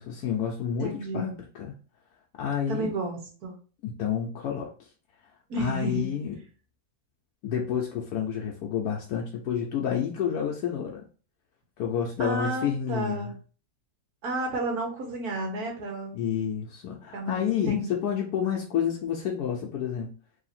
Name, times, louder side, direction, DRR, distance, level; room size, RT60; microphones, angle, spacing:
voice 1, 0.0-1.7 2.4-2.9 3.8-4.7 5.6-6.4 7.4-11.0 11.8-13.3 16.1-20.1, left 8 dB, 80° left, -1 dB, 1.2 m, -29 dB
voice 2, 0.8-1.3 2.7-3.5 5.5-6.1 12.2-13.3 14.2-16.2 17.1-17.9, right 2 dB, 75° right, 1 dB, 1.6 m, -32 dB
3.4 x 2.8 x 4.1 m, 0.39 s
omnidirectional pair, 1.6 m